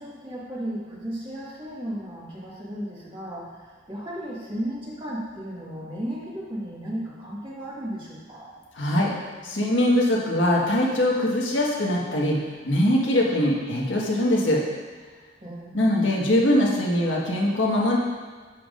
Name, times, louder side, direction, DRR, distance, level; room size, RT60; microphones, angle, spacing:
voice 1, 0.0-8.5 15.4-15.9, equal, 25° right, -6 dB, 1.9 m, -35 dB
voice 2, 8.8-9.1 9.4-12.4 12.6-14.6 15.7-18.0, left 1 dB, 85° left, -3 dB, 1.6 m, -22 dB
10.5 x 7.2 x 2.6 m, 1.5 s
head